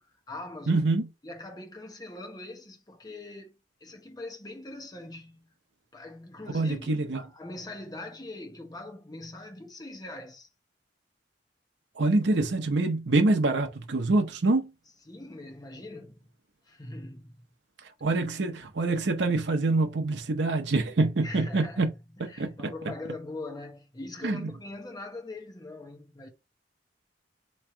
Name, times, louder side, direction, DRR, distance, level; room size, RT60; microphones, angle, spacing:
voice 1, 0.0-0.9 1.2-5.5 5.9-10.5 15.1-16.2 16.7-17.4 21.2-21.9 22.2-26.3, left 2 dB, 20° left, 1.0 m, -42 dB
voice 2, 0.7-1.1 6.5-7.2 11.9-14.7 17.8-21.9 22.2-22.7 24.2-24.5, right 2 dB, 85° right, 0.8 m, -25 dB
3.5 x 3.2 x 4.4 m
head